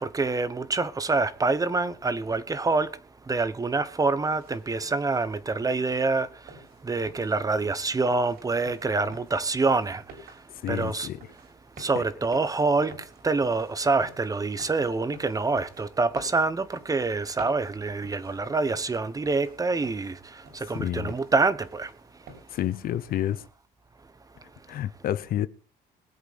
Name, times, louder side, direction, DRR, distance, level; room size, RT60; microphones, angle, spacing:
voice 1, 0.0-2.9 3.3-6.3 6.8-10.0 10.7-11.1 11.8-12.9 13.2-20.2 20.5-21.9, right 3 dB, 20° right, 1.1 m, -26 dB
sound 1, 4.2-22.6, right 3 dB, 70° right, 6.0 m, -51 dB
voice 2, 10.6-11.2 12.0-12.1 20.7-21.1 22.5-23.4 24.7-25.5, left 12 dB, 60° left, 0.8 m, -29 dB
22.0 x 8.1 x 4.2 m
cardioid pair, 110°, 17 cm